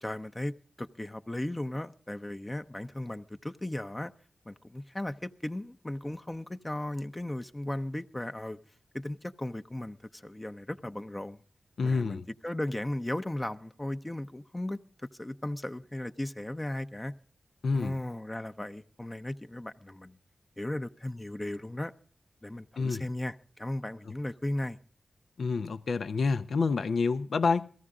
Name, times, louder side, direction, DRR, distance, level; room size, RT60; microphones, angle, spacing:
voice 1, 0.0-4.1 4.5-8.6 8.9-11.4 11.8-14.8 15.2-17.1 17.7-20.2 20.6-21.9 22.4-24.8, left 1 dB, 15° left, 0.6 m, -36 dB
voice 2, 11.8-12.3 17.6-17.9 22.8-23.0 25.4-27.7, left 4 dB, 80° left, 0.5 m, -28 dB
17.0 x 14.5 x 3.6 m
wide cardioid pair, 75°, 0 cm